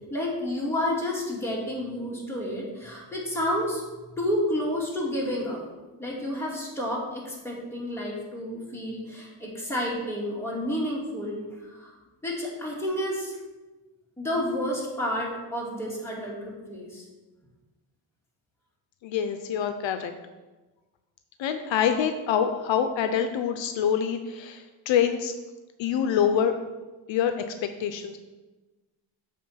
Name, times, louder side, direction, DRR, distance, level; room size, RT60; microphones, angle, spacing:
voice 1, 0.1-3.8 4.2-5.6 6.0-11.9 12.2-13.4 14.2-17.0, left 1 dB, 5° left, -5 dB, 2.4 m, -30 dB
voice 2, 19.0-20.1 21.4-25.3 25.8-26.5 27.1-27.3 27.8-28.2, left 8 dB, 75° left, 8 dB, 0.6 m, -25 dB
7.6 x 3.7 x 5.6 m, 1.2 s
cardioid pair, 90°, 46 cm